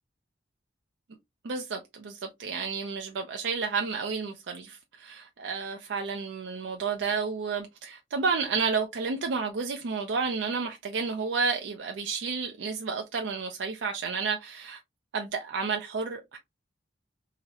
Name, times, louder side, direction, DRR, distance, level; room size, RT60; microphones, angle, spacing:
voice 1, 1.4-14.8 15.1-16.4, right 5 dB, 70° right, 0.4 m, -31 dB
3.8 x 2.0 x 2.7 m
head